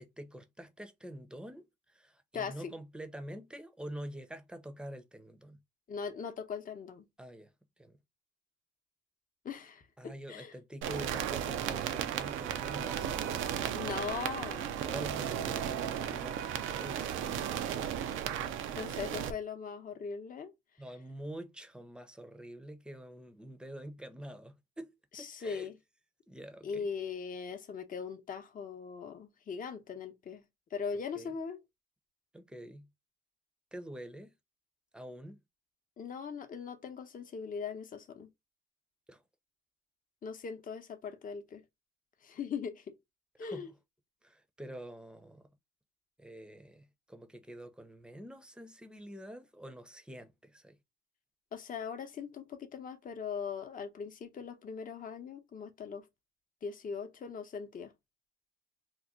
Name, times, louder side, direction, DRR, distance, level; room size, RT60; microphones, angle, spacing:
voice 1, 0.0-5.6 7.2-8.0 10.0-13.8 14.8-17.3 20.8-24.9 25.2-25.7 26.3-26.9 31.2-31.3 32.3-32.9 33.7-34.4 34.9-35.4 39.1-39.2 43.4-43.7 44.2-45.5 46.2-50.8, right 1 dB, 5° right, 0.6 m, -47 dB
voice 2, 5.9-7.1 9.4-9.8 10.3-10.5 13.7-14.8 18.7-20.5 25.1-25.7 26.6-30.4 30.7-31.6 36.0-38.3 40.2-41.6 42.2-43.0 43.4-43.7 51.5-56.1 56.6-57.9, left 6 dB, 45° left, 0.7 m, -40 dB
sound 1, 10.8-19.3, right 9 dB, 90° right, 0.5 m, -35 dB
3.0 x 2.2 x 3.6 m
cardioid pair, 90°, 20 cm